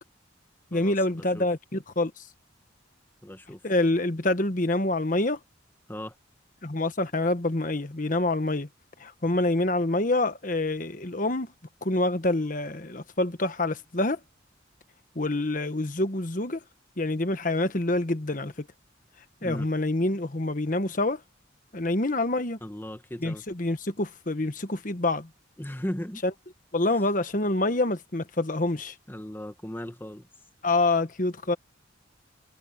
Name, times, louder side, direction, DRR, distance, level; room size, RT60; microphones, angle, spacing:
voice 1, 0.7-2.1 3.6-5.4 6.6-8.7 9.0-11.5 11.8-14.2 15.1-16.6 17.0-18.7 19.4-21.2 21.7-22.6 23.2-25.3 26.7-28.9 30.6-31.6, left 2 dB, 45° left, 1.3 m, -26 dB
voice 2, 3.2-3.6 5.9-6.1 19.4-19.7 22.6-23.4 25.6-26.2 26.9-27.0 29.1-30.3, equal, 10° left, 1.2 m, -37 dB
head